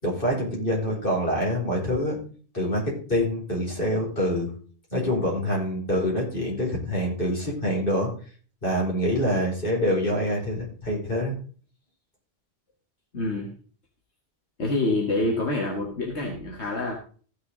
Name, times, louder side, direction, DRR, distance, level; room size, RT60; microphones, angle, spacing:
voice 1, 0.0-2.2 2.5-4.5 4.9-8.1 8.6-11.4, equal, 50° left, -2 dB, 4.8 m, -26 dB
voice 2, 13.1-13.5 14.6-16.9, left 2 dB, 80° left, 0 dB, 2.1 m, -26 dB
15.0 x 6.7 x 3.9 m, 0.41 s
omnidirectional pair, 1.1 m